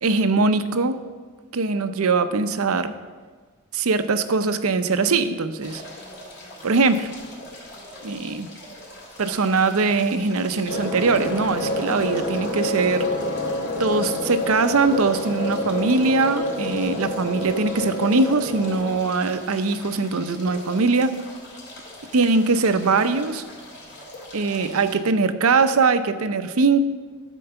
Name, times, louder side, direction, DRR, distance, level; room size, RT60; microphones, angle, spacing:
voice 1, 0.0-1.0 1.5-2.9 3.7-5.8 6.6-7.1 8.0-8.5 9.2-13.0 13.8-21.2 22.1-23.4 24.3-26.8, right 4 dB, 75° right, 10 dB, 0.6 m, -21 dB
sound 1, 5.6-24.9, left 1 dB, 55° left, 3.4 m, -43 dB
sound 2, 10.7-18.9, left 1 dB, 70° left, 2.1 m, -27 dB
12.5 x 4.6 x 6.9 m, 1.5 s
head